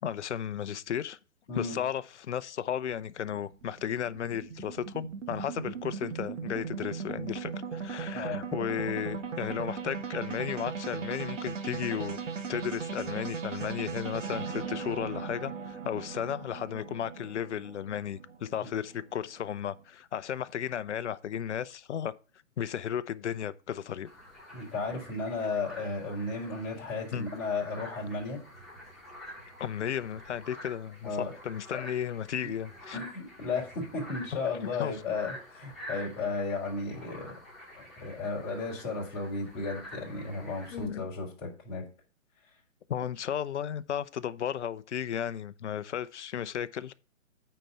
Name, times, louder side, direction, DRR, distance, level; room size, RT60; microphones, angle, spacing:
voice 1, 0.0-1.2 1.5-12.2 12.5-22.1 22.6-24.1 27.1-27.3 29.6-33.0 34.8-34.9 40.7-41.1 42.9-46.9, left 9 dB, 60° left, 0.7 m, -34 dB
sound 1, 2.9-19.3, right 6 dB, 70° right, 1.9 m, -38 dB
sound 2, 24.0-40.9, equal, ahead, 1.9 m, -48 dB
voice 2, 24.5-28.4 31.0-31.3 31.7-31.9 32.9-37.3 37.7-41.8, left 3 dB, 25° left, 3.5 m, -34 dB
9.1 x 4.3 x 5.6 m
hypercardioid pair, 155°, 39 cm